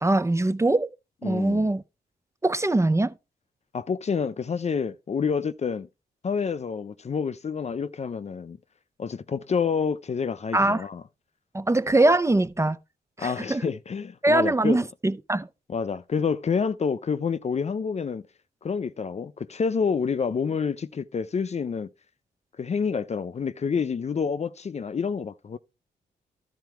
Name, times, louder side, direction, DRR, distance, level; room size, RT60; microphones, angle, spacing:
voice 1, 0.0-0.9 1.2-1.8 2.4-3.1 10.5-10.9 11.5-12.8 13.2-13.6 14.2-15.5, right 2 dB, 15° right, 0.6 m, -22 dB
voice 2, 1.2-1.7 3.7-5.9 6.2-8.6 9.0-11.0 13.2-14.8 15.7-18.2 18.6-21.9 22.6-25.6, left 6 dB, 40° left, 0.5 m, -28 dB
12.5 x 4.5 x 4.5 m
cardioid pair, 75°, 17 cm